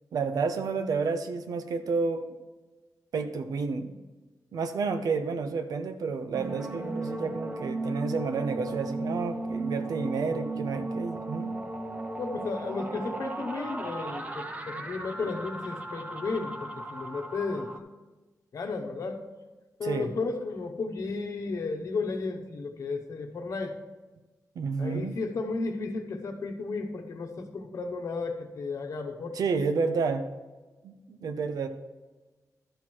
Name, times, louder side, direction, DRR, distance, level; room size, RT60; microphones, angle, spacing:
voice 1, 0.1-2.2 3.1-3.9 4.5-11.5 19.8-20.1 24.6-25.2 29.3-30.2 30.8-31.7, right 4 dB, 80° right, 8 dB, 0.8 m, -30 dB
sound 1, 6.3-17.8, right 2 dB, 20° right, 0.8 m, -36 dB
voice 2, 12.2-17.7 18.5-19.3 19.8-23.8 24.8-29.8, left 3 dB, 55° left, 5 dB, 1.1 m, -34 dB
12.5 x 4.5 x 6.3 m, 1.2 s
wide cardioid pair, 145°, 6 cm